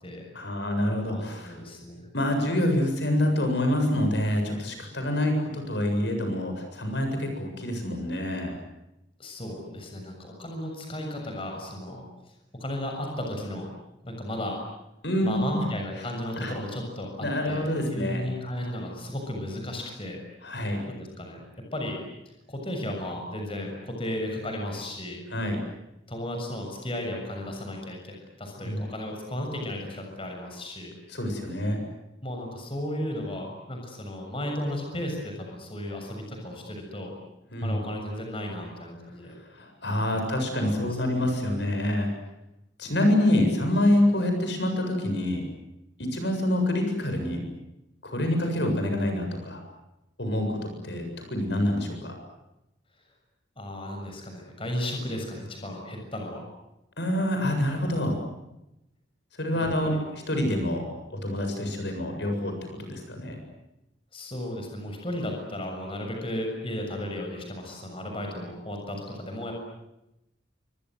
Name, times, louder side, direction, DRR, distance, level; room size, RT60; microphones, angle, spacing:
voice 1, 0.3-1.6 2.1-8.5 15.0-15.6 16.4-16.5 17.2-18.2 20.4-20.8 25.3-25.6 28.6-28.8 31.1-31.8 37.5-37.8 39.5-42.1 42.8-45.4 46.0-47.4 48.0-49.6 50.2-52.1 57.0-58.2 59.4-59.9 60.3-60.8 61.1-62.5 62.8-63.4, left 1 dB, 65° left, 5 dB, 7.6 m, -26 dB
voice 2, 1.0-2.1 9.2-12.1 12.6-13.7 14.0-14.6 15.2-20.2 20.9-21.4 21.7-22.0 22.5-25.2 26.1-30.9 32.2-37.1 37.6-39.3 40.1-40.2 40.5-40.7 41.0-41.1 53.6-56.4 59.5-60.0 64.1-69.5, left 1 dB, 30° left, 2 dB, 6.9 m, -34 dB
29.0 x 25.5 x 7.9 m, 0.89 s
head